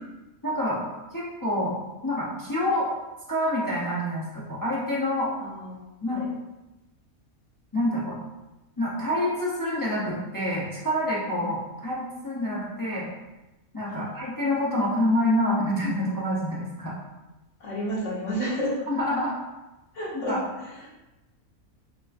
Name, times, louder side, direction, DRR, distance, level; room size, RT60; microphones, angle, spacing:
voice 1, 0.4-0.8 1.1-1.7 2.0-2.9 3.3-5.3 6.0-6.2 7.7-8.2 8.8-13.1 13.7-16.9 18.9-19.3 20.1-20.4, left 1 dB, 30° left, -6 dB, 0.3 m, -27 dB
voice 2, 5.4-5.8 6.1-6.3 11.4-11.5 13.8-14.0 17.6-18.7 19.9-20.9, equal, 60° left, -6 dB, 1.4 m, -31 dB
5.3 x 2.5 x 2.5 m, 1.0 s
omnidirectional pair, 1.5 m